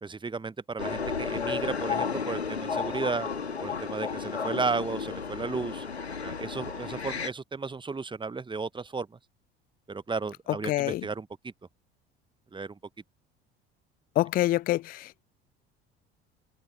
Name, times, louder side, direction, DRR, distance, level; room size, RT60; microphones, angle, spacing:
voice 1, 0.0-3.3 3.6-5.8 6.2-9.1 9.9-11.5 12.5-12.8, right 4 dB, 15° right, 1.1 m, -34 dB
sound 1, 0.8-7.3, left 5 dB, 85° left, 2.2 m, -33 dB
voice 2, 10.7-11.0 14.2-15.2, left 16 dB, 30° left, 0.4 m, -26 dB
open air
figure-of-eight pair, 60°, 31 cm